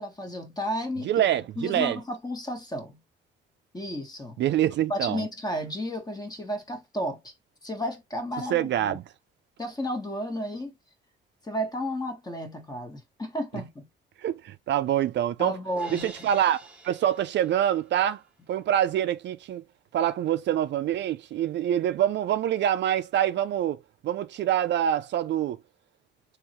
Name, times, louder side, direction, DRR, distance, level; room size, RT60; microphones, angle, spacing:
voice 1, 0.0-1.3 1.6-3.0 3.7-4.4 4.9-7.3 7.6-8.7 9.6-10.7 11.4-13.9 15.4-16.3, equal, 20° left, 1.3 m, -32 dB
voice 2, 1.0-2.0 4.4-5.2 8.5-9.0 14.2-15.5 15.9-16.6 16.8-18.2 18.5-19.6 19.9-25.6, right 11 dB, 65° right, 0.4 m, -25 dB
Crash cymbal, 15.7-18.0, right 1 dB, 5° right, 1.1 m, -48 dB
3.8 x 3.0 x 3.0 m
cardioid pair, 90°, 20 cm